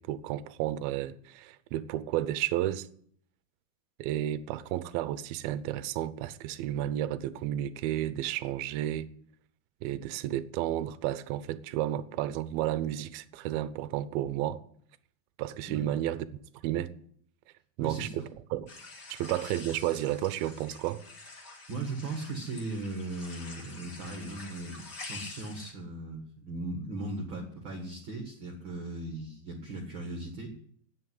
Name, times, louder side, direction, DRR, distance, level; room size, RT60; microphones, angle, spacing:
voice 1, 0.0-2.9 4.0-9.1 9.8-14.6 15.4-16.3 16.6-16.9 17.8-18.7 19.1-21.0, right 13 dB, 80° right, 2.4 m, -32 dB
voice 2, 17.8-18.3 21.7-30.5, right 2 dB, 45° right, 1.8 m, -38 dB
sound 1, 18.7-25.7, left 3 dB, 35° left, 1.8 m, -47 dB
9.6 x 8.6 x 9.5 m
omnidirectional pair, 4.6 m